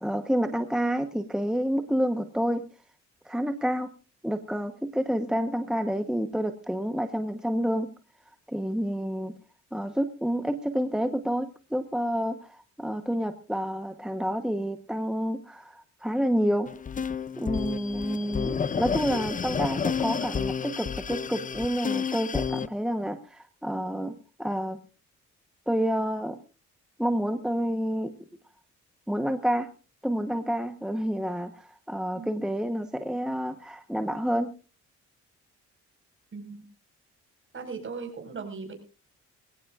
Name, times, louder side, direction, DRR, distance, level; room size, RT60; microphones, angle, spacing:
voice 1, 0.0-2.6 3.2-3.9 4.2-7.9 8.5-9.3 9.7-16.7 17.4-24.8 25.7-26.4 27.0-28.1 29.1-29.7 30.0-34.5, equal, ahead, 8 dB, 1.1 m, -29 dB
sound 1, 16.7-22.7, left 6 dB, 25° left, 0.6 m, -30 dB
voice 2, 36.3-36.6 37.5-38.7, right 5 dB, 40° right, 4 dB, 5.5 m, -38 dB
21.5 x 16.5 x 2.5 m, 0.34 s
cardioid pair, 90°, 30 cm